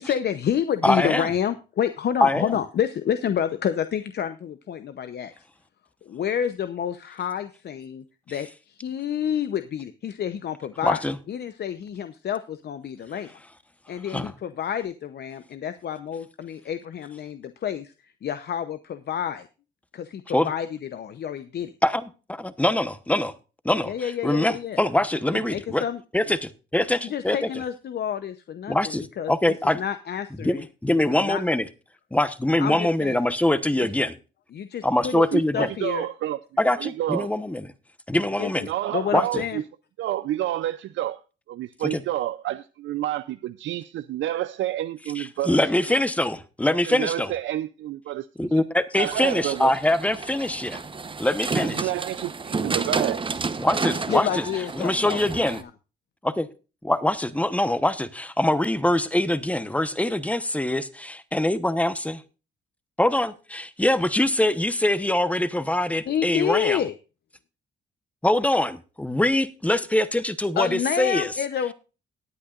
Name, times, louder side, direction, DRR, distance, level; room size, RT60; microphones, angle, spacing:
voice 1, 0.0-5.3 6.0-13.3 13.9-19.5 19.9-21.7 23.8-24.8 25.5-26.0 26.3-26.4 27.0-29.3 29.8-30.7 31.2-31.4 32.6-33.2 33.8-33.9 34.5-36.1 38.4-39.6 54.1-55.7 66.1-66.9 70.6-71.7, left 9 dB, 55° left, 0.8 m, -29 dB
voice 2, 0.8-1.3 2.2-2.5 10.8-11.2 14.1-14.3 20.3-20.5 21.8-23.3 23.6-23.9 24.2-25.8 26.1-27.4 28.7-29.8 30.4-31.7 32.1-34.1 34.8-35.7 36.6-37.7 38.1-38.7 39.1-39.4 41.9-42.0 45.2-47.3 48.4-50.8 51.2-51.9 53.6-54.4 54.8-55.6 56.2-56.5 56.8-62.1 63.0-66.8 68.2-71.3, left 1 dB, 5° left, 1.0 m, -23 dB
voice 3, 34.9-36.4 36.7-37.3 38.7-39.6 40.0-41.2 41.5-45.6 45.9-46.0 46.9-48.5 49.0-49.7 51.6-53.4, right 13 dB, 70° right, 0.5 m, -29 dB
sound 1, 48.9-55.6, right 4 dB, 25° right, 0.9 m, -31 dB
19.0 x 8.7 x 2.5 m
cardioid pair, 90°, 20 cm